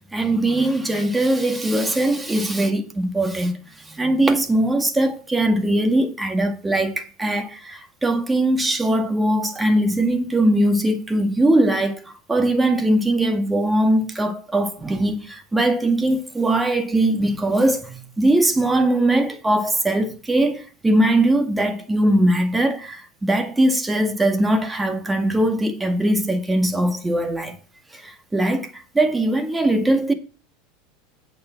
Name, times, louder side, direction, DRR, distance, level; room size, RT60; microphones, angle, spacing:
voice 1, 0.1-3.5 3.9-12.0 12.3-27.6 27.9-30.1, right 1 dB, 10° right, 1.9 m, -20 dB
8.5 x 6.9 x 5.9 m
hypercardioid pair, 85°, 0 cm